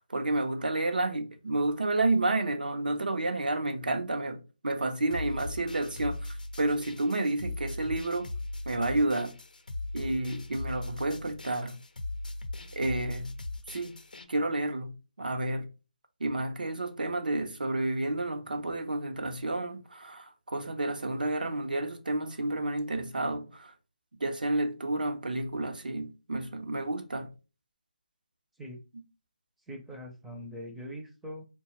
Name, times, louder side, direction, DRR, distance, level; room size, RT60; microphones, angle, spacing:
voice 1, 0.0-8.3 8.7-9.3 9.9-11.8 12.7-13.3 13.7-13.9 14.3-15.7 16.2-23.7 24.2-27.3, right 2 dB, 85° right, 0.6 m, -30 dB
sound 1, 5.1-14.2, left 2 dB, 80° left, 0.5 m, -39 dB
voice 2, 29.7-31.4, equal, 5° right, 0.4 m, -42 dB
2.8 x 2.2 x 2.9 m
figure-of-eight pair, 160°, 5 cm